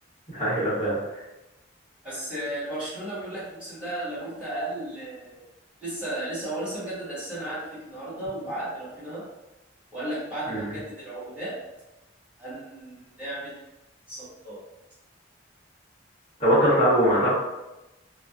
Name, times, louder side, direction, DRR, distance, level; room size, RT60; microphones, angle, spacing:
voice 1, 0.3-1.0 10.5-10.6 16.4-17.3, equal, 35° left, -13 dB, 1.3 m, -21 dB
voice 2, 2.0-5.4 5.8-9.2 9.9-11.5 12.4-13.6 14.1-14.6, right 1 dB, 5° right, -14 dB, 1.5 m, -34 dB
2.5 x 2.4 x 2.3 m, 1.0 s
head